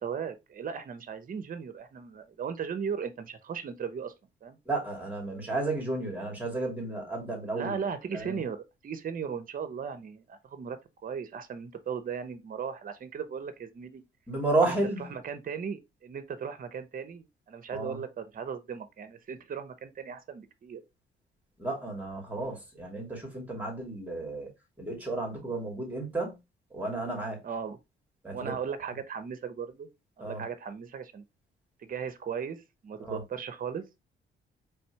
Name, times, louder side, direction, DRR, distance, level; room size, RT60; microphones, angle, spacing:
voice 1, 0.0-4.1 4.4-4.6 7.5-14.0 14.7-14.8 15.1-20.8 27.4-27.8 28.3-29.9 30.2-31.2 31.8-33.8, right 6 dB, 45° right, 0.8 m, -37 dB
voice 2, 4.7-7.8 8.1-8.4 14.3-15.1 17.7-18.0 21.6-24.5 24.8-26.4 26.7-27.4 28.2-28.5 30.2-30.4 33.0-33.2, right 2 dB, 10° right, 2.6 m, -32 dB
4.3 x 3.4 x 3.2 m
cardioid pair, 90°, 20 cm